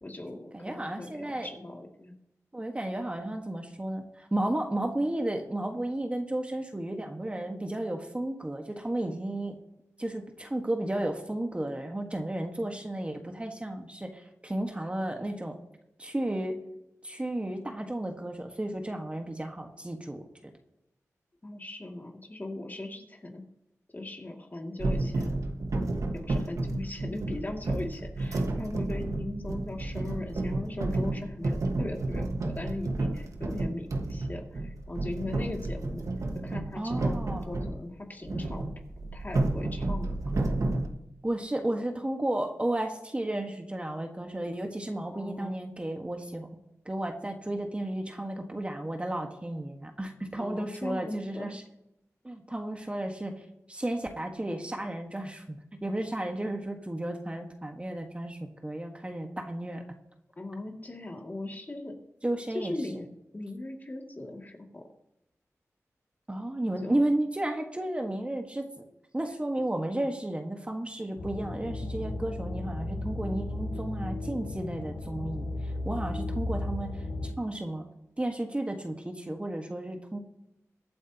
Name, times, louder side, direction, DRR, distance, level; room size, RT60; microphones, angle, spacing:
voice 1, 0.0-2.1 21.4-23.4 23.9-36.0 36.4-38.7 39.1-40.6 45.1-45.6 50.4-51.5 60.4-61.9 62.5-63.1 63.3-64.8 66.8-66.9, left 2 dB, 30° left, 1 dB, 2.3 m, -39 dB
voice 2, 0.5-1.5 2.5-9.6 10.0-15.5 16.0-16.6 17.0-20.2 36.8-37.5 41.2-46.5 46.8-51.6 52.2-53.4 53.7-59.8 62.2-62.7 66.3-68.7 69.1-77.0 77.2-77.8 78.2-80.2, right 1 dB, 20° right, 4 dB, 1.4 m, -33 dB
sound 1, 24.8-37.8 38.2-40.9, right 2 dB, 70° right, 1.5 m, -31 dB
sound 2, 71.2-77.3, left 2 dB, 80° left, 2.4 m, -35 dB
23.0 x 8.5 x 2.9 m, 0.85 s
wide cardioid pair, 65°, 6 cm